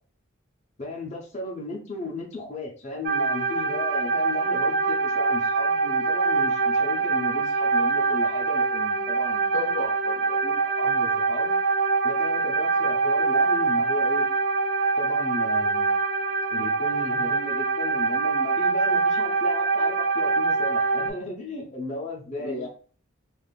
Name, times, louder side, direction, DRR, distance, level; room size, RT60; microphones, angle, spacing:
voice 1, 0.8-9.7 10.6-11.5 12.0-14.3 15.0-15.9 16.5-22.7, left 2 dB, 30° left, -2 dB, 0.7 m, -35 dB
sound 1, 3.0-21.1, right 4 dB, 40° right, 0.3 m, -24 dB
voice 2, 9.5-10.6 22.4-22.7, left 4 dB, 70° left, 2 dB, 0.8 m, -35 dB
3.5 x 2.5 x 2.4 m, 0.41 s
head